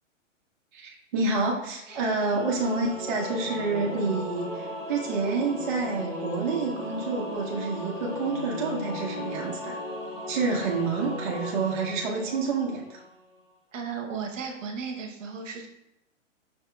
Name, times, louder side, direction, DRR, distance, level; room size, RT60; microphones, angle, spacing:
voice 1, 0.7-9.8 10.3-13.0, right 4 dB, 40° right, -2 dB, 0.6 m, -28 dB
Singing / Musical instrument, 1.9-13.1, left 1 dB, 25° left, 1.1 m, -36 dB
voice 2, 13.7-15.7, right 5 dB, 70° right, 2 dB, 0.9 m, -35 dB
5.7 x 2.7 x 2.2 m, 0.85 s
hypercardioid pair, 145°, 38 cm